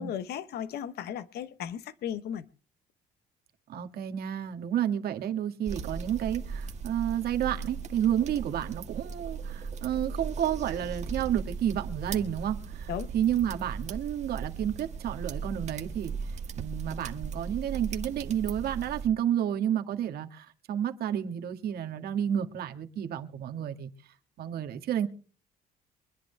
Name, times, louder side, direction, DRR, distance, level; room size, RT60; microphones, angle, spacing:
voice 1, 0.0-2.5 12.9-13.1, left 9 dB, 70° left, 1.1 m, -35 dB
voice 2, 3.7-23.9 24.4-25.1, right 10 dB, 65° right, 1.9 m, -31 dB
sound 1, 5.7-19.1, right 5 dB, 40° right, 1.8 m, -38 dB
24.5 x 10.5 x 3.4 m
cardioid pair, 110°, 17 cm